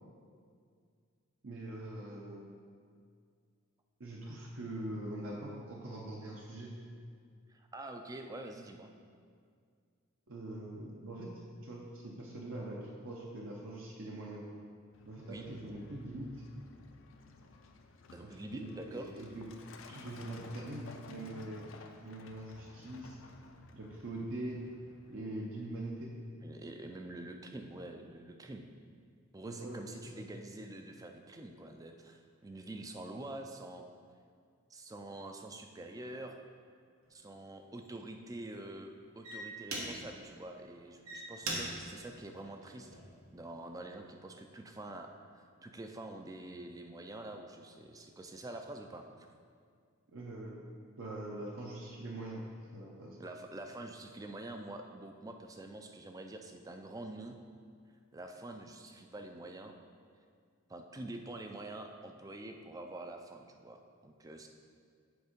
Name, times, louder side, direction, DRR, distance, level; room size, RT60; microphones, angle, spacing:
voice 1, 1.4-2.4 4.0-6.7 10.3-11.3 11.6-14.5 15.1-16.3 18.2-19.5 19.9-21.6 22.0-23.2 23.7-24.6 25.1-26.1 29.4-30.2 50.1-50.6 51.0-52.4 52.7-53.2, right 1 dB, 65° right, -3 dB, 0.7 m, -43 dB
voice 2, 7.5-8.9 15.2-15.5 18.1-19.1 26.4-28.7 29.3-33.8 34.7-36.4 37.1-43.0 43.3-49.3 53.2-57.4 58.1-59.8 60.7-64.5, right 2 dB, 15° right, 5 dB, 0.3 m, -46 dB
Truck, 14.9-25.2, left 3 dB, 65° left, 0.5 m, -55 dB
sound 1, 37.0-37.2 37.8-38.1 38.8-38.9 39.2-40.3 40.8-43.2 43.8-44.1, right 2 dB, 85° right, 1.2 m, -41 dB
7.9 x 3.6 x 5.0 m, 2.1 s
head